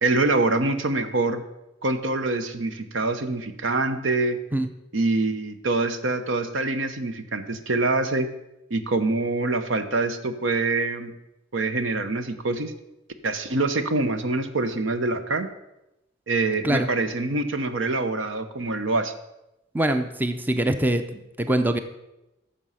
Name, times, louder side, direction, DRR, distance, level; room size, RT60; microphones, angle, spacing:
voice 1, 0.0-1.4 1.8-4.4 4.9-8.3 8.7-11.1 11.5-12.7 13.2-15.5 16.3-19.1, right 2 dB, 80° right, 9 dB, 0.9 m, -25 dB
voice 2, 19.7-21.8, right 1 dB, 10° right, 8 dB, 0.6 m, -23 dB
12.5 x 6.9 x 5.7 m, 0.93 s
head